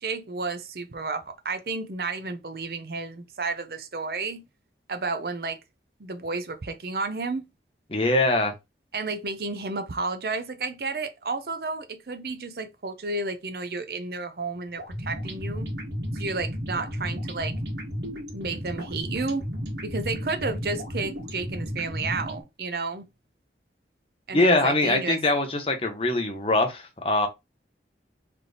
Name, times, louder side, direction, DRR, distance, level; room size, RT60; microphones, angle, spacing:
voice 1, 0.0-4.4 4.9-5.6 6.0-7.5 8.9-15.7 16.1-17.6 18.3-19.5 19.8-23.0 24.3-25.2, right 3 dB, 60° right, 0.6 m, -32 dB
voice 2, 7.9-8.5 24.3-27.3, left 2 dB, 30° left, 0.9 m, -23 dB
sound 1, 14.8-22.4, equal, 75° right, 1.6 m, -33 dB
3.4 x 2.9 x 3.9 m
head